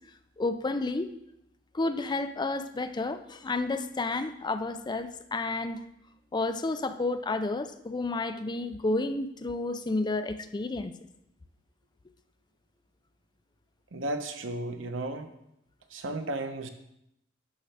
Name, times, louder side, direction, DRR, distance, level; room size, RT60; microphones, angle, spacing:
voice 1, 0.4-1.1 1.7-5.8 6.3-10.9, left 2 dB, 25° left, 9 dB, 0.4 m, -31 dB
voice 2, 13.9-15.3 15.9-16.7, right 2 dB, 85° right, 6 dB, 0.9 m, -34 dB
11.0 x 6.7 x 3.4 m, 0.80 s
head